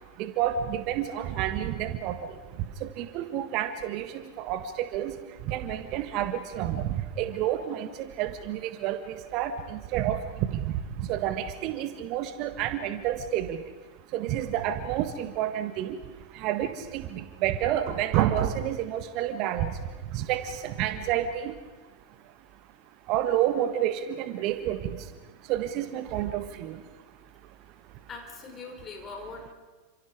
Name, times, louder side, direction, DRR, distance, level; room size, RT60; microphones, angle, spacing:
voice 1, 0.2-2.2 2.8-5.1 5.5-10.6 11.0-13.6 14.1-16.0 16.3-19.7 20.1-21.5 23.1-25.0 25.5-26.8, right 11 dB, 40° right, 10 dB, 1.6 m, -29 dB
voice 2, 28.1-29.5, left 4 dB, 25° left, 2 dB, 5.7 m, -41 dB
30.0 x 27.5 x 4.9 m, 1.3 s
figure-of-eight pair, 90°, 0 cm